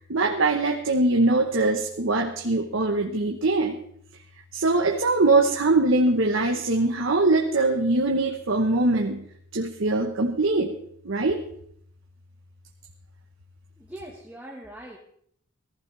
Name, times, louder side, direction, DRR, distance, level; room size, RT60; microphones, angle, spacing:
voice 1, 0.1-3.8 4.5-9.2 9.5-10.7 11.0-11.4, right 2 dB, 80° right, 2 dB, 1.2 m, -22 dB
voice 2, 13.8-15.0, right 1 dB, 5° right, -3 dB, 1.7 m, -41 dB
18.5 x 15.0 x 3.5 m, 0.66 s
head